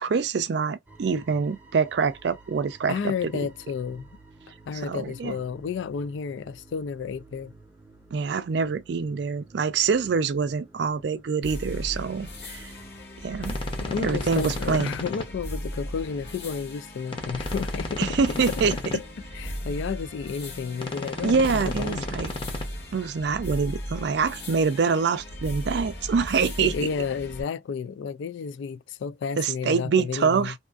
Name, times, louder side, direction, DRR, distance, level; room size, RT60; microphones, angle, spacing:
voice 1, 0.0-3.5 4.7-5.4 8.1-12.7 13.2-13.6 14.0-14.9 18.0-18.8 21.2-22.3 22.9-26.7 29.4-30.5, right 5 dB, 60° right, 0.4 m, -25 dB
sound 1, 0.9-13.0, right 3 dB, 10° right, 0.6 m, -52 dB
voice 2, 2.9-4.1 4.7-7.5 13.8-18.1 18.5-18.6 18.9-19.0 19.3-22.2 26.6-30.5, left 6 dB, 75° left, 0.3 m, -32 dB
sound 2, 11.4-27.4, equal, 60° left, 1.1 m, -36 dB
sound 3, 13.4-15.2 17.1-18.9 20.8-22.6, left 2 dB, 25° left, 0.7 m, -34 dB
2.7 x 2.5 x 2.3 m
head